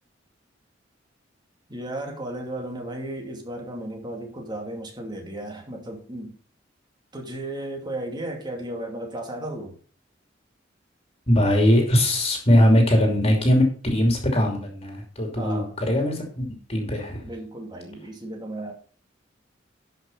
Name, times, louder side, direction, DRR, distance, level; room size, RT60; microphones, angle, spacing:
voice 1, 1.7-6.3 7.1-9.8 15.4-15.7 17.2-18.7, right 1 dB, 25° right, 2 dB, 2.7 m, -34 dB
voice 2, 11.3-17.2, equal, 35° left, 2 dB, 2.8 m, -21 dB
12.0 x 5.9 x 5.5 m, 0.41 s
head